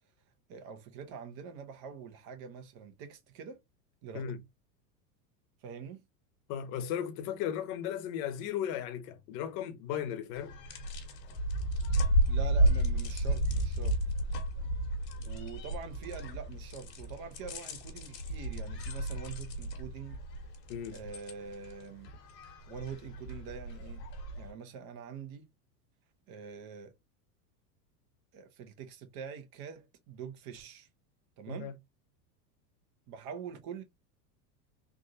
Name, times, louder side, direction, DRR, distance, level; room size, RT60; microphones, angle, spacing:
voice 1, 0.5-3.6 4.0-4.3 5.6-6.0 12.3-14.0 15.2-20.2 20.9-22.1 22.7-24.1 24.4-25.5 26.3-26.9 28.3-30.9 31.4-31.7 33.1-33.8, right 6 dB, 45° right, 1.1 m, -45 dB
voice 2, 6.5-10.5 20.7-21.0 31.5-31.7, left 9 dB, 55° left, 1.0 m, -36 dB
sound 1, 10.4-24.5, right 1 dB, 85° left, 1.4 m, -32 dB
3.6 x 2.5 x 2.7 m
hypercardioid pair, 105°, 48 cm